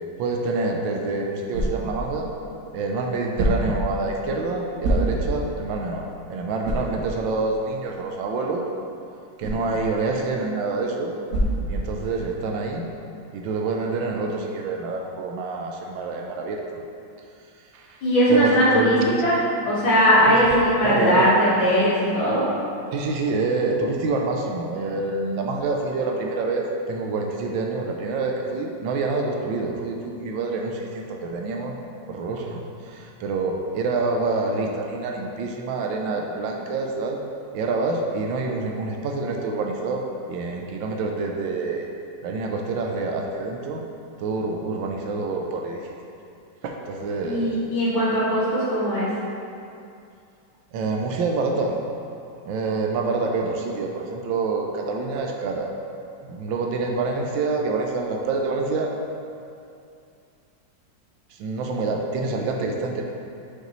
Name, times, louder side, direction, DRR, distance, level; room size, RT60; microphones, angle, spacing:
voice 1, 0.2-2.3 2.7-8.7 9.4-11.1 11.7-12.8 13.3-16.6 17.7-18.0 18.3-19.2 20.3-20.6 20.8-21.3 22.9-31.8 32.1-37.2 37.5-41.9 42.2-43.8 44.2-45.9 46.6-47.5 50.7-51.8 52.4-55.7 56.3-58.9 61.3-63.0, right 3 dB, 75° right, 1 dB, 1.3 m, -27 dB
sound 1, 0.7-12.4, right 1 dB, 50° right, 1.2 m, -30 dB
voice 2, 18.0-19.3 19.6-22.5 47.2-49.1, equal, 75° left, -10 dB, 2.5 m, -19 dB
6.1 x 5.3 x 3.0 m, 2.6 s
omnidirectional pair, 2.2 m